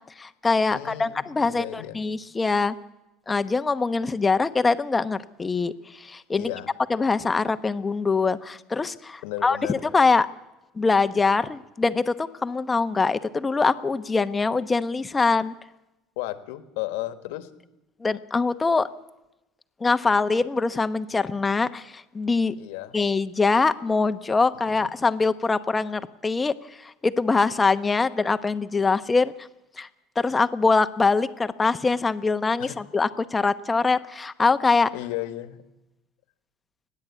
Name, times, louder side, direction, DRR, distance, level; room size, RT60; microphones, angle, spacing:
voice 1, 0.2-2.7 3.3-6.5 6.9-10.3 10.8-15.5 18.0-18.9 19.8-22.5 22.9-29.3 29.8-29.9 30.2-34.9, left 4 dB, 20° left, 11 dB, 1.0 m, -23 dB
voice 2, 0.7-2.0 6.4-6.7 9.2-9.8 16.2-17.5 22.6-23.0 24.7-24.9 32.6-32.7 34.9-35.6, left 15 dB, 85° left, 10 dB, 1.5 m, -34 dB
29.0 x 10.5 x 8.4 m, 0.99 s
supercardioid pair, 100°, 0 cm